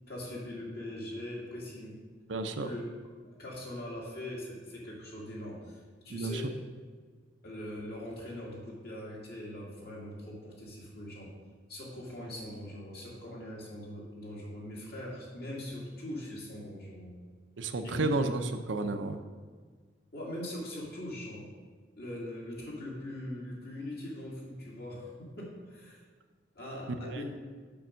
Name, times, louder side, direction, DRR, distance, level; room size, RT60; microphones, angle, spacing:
voice 1, 0.1-2.0 2.6-2.8 3.3-5.8 6.0-6.6 7.4-11.3 11.7-17.2 17.8-18.2 20.1-21.5 22.0-26.0 26.6-27.2, left 1 dB, 55° left, -4 dB, 2.2 m, -41 dB
voice 2, 2.3-2.7 6.1-6.4 17.6-19.2 27.0-27.2, right 2 dB, 80° right, 7 dB, 0.7 m, -32 dB
7.0 x 5.4 x 6.3 m, 1.5 s
head